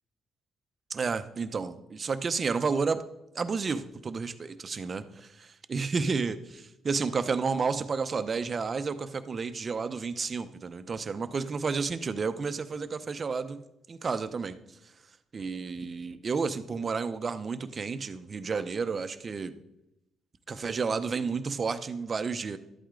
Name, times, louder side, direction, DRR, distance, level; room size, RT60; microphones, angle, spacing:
voice 1, 0.9-3.0 3.3-13.6 13.9-14.6 15.3-19.5 20.5-22.6, right 5 dB, 40° right, 11 dB, 0.8 m, -31 dB
12.0 x 8.6 x 3.8 m, 0.89 s
cardioid pair, 90°, 0 cm